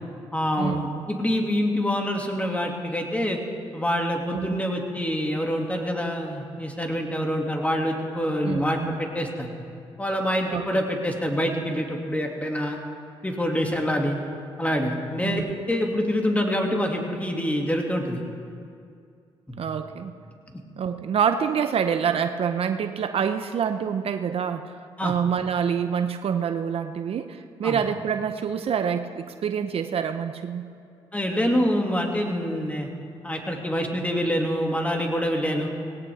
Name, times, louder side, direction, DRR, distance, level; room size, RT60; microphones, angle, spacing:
voice 1, 0.3-3.4 3.7-9.5 10.0-12.8 13.2-14.2 14.6-18.2 19.5-19.6 25.0-25.1 27.6-27.8 31.1-32.9 33.2-35.7, equal, 15° left, 1 dB, 2.5 m, -26 dB
voice 2, 8.5-8.9 10.5-10.8 15.2-15.5 19.6-20.1 20.8-24.8 25.0-30.7, right 7 dB, 60° right, 8 dB, 0.7 m, -26 dB
18.5 x 17.5 x 3.6 m, 2.3 s
supercardioid pair, 60°, 11 cm